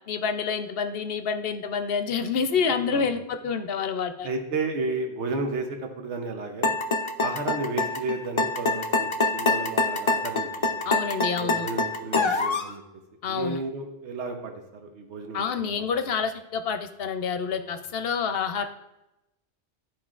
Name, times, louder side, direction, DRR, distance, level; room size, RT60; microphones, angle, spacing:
voice 1, 0.1-4.3 10.8-11.7 13.2-13.6 15.3-18.7, left 6 dB, 60° left, 8 dB, 0.8 m, -28 dB
voice 2, 4.2-6.7 7.2-10.8 11.4-12.8 13.3-14.5 14.8-15.8, right 3 dB, 80° right, 3 dB, 1.2 m, -32 dB
sound 1, 6.6-12.7, left 3 dB, 40° left, 0.4 m, -25 dB
13.0 x 4.5 x 2.4 m, 0.94 s
omnidirectional pair, 1.2 m